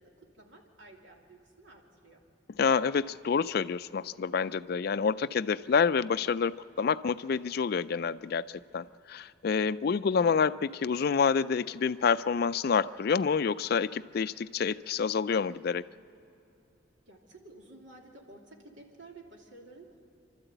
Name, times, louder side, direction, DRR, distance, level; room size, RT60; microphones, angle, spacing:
voice 1, 0.0-2.2 17.1-20.1, right 2 dB, 75° right, 0 dB, 2.9 m, -53 dB
voice 2, 2.6-15.8, left 6 dB, 50° left, 15 dB, 0.4 m, -28 dB
28.5 x 12.5 x 8.0 m, 3.0 s
head